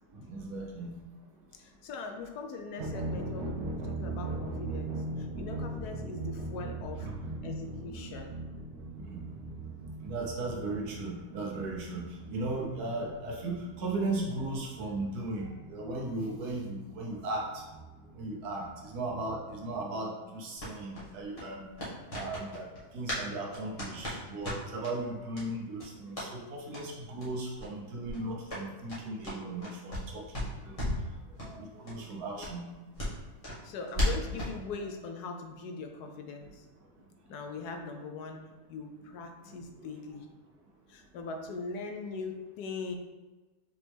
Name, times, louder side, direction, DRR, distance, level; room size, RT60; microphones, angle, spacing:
voice 1, 0.1-0.9 7.0-7.3 7.6-7.7 9.0-9.2 10.0-17.6 18.2-21.7 22.1-22.7 22.9-30.8 31.4-32.7 39.7-39.8, right 2 dB, 75° right, -1 dB, 1.4 m, -37 dB
voice 2, 1.5-7.1 7.4-8.3 33.6-36.7 37.3-38.4 38.7-40.3 40.9-42.9, left 4 dB, 80° left, 4 dB, 1.1 m, -41 dB
sound 1, 2.8-19.8, right 2 dB, 55° right, 0.8 m, -40 dB
sound 2, 20.6-23.3 23.5-24.9 25.3-25.5 25.7-26.3 26.7-26.8 27.2-27.3 27.5-27.7 28.0-30.1 30.3-31.1 31.4-31.5 31.8-31.9 32.4-34.6, left 1 dB, 25° left, 1.2 m, -35 dB
5.1 x 3.0 x 3.4 m, 1.2 s
omnidirectional pair, 1.7 m